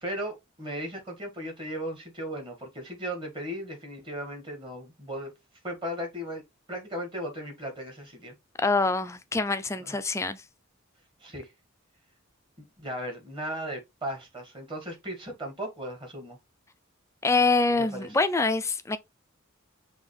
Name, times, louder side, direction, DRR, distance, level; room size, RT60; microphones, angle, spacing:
voice 1, 0.0-5.3 5.6-6.4 6.7-8.3 9.9-10.0 11.2-11.5 12.6-16.4 17.8-18.1, equal, 25° right, 1.6 m, -36 dB
voice 2, 8.6-10.4 17.2-19.0, left 3 dB, 15° left, 0.4 m, -25 dB
5.4 x 2.9 x 3.1 m
head